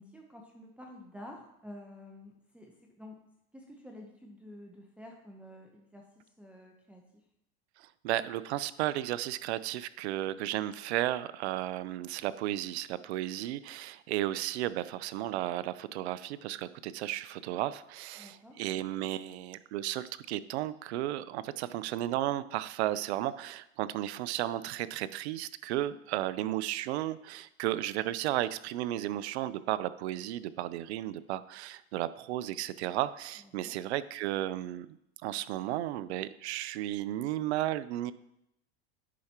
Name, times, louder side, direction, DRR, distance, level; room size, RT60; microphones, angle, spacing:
voice 1, 0.0-3.2 3.5-7.2 18.2-18.6 33.4-33.8, left 1 dB, 5° right, 0 dB, 0.8 m, -50 dB
voice 2, 7.8-34.9 35.2-38.1, right 14 dB, 85° right, 16 dB, 0.5 m, -34 dB
10.0 x 5.8 x 2.9 m, 0.80 s
supercardioid pair, 110°, 32 cm